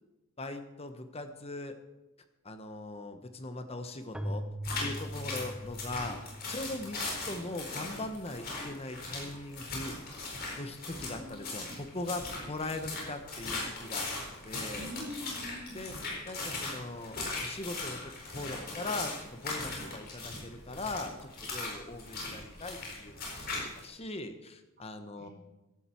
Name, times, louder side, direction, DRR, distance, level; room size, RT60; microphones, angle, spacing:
voice 1, 0.4-1.7 2.4-4.4 4.8-6.2 6.5-9.9 10.6-14.1 14.4-14.9 15.7-15.9 16.2-18.0 18.3-25.3, left 2 dB, 30° left, 8 dB, 1.1 m, -40 dB
Keyboard (musical), 4.1-7.7, equal, 5° right, 0.8 m, -41 dB
sound 1, 4.6-23.8, left 3 dB, 45° left, 4.6 m, -39 dB
voice 2, 10.9-11.8 14.7-16.1 25.2-25.3, equal, 45° right, 0 dB, 3.1 m, -45 dB
15.5 x 12.0 x 4.5 m, 1.0 s
head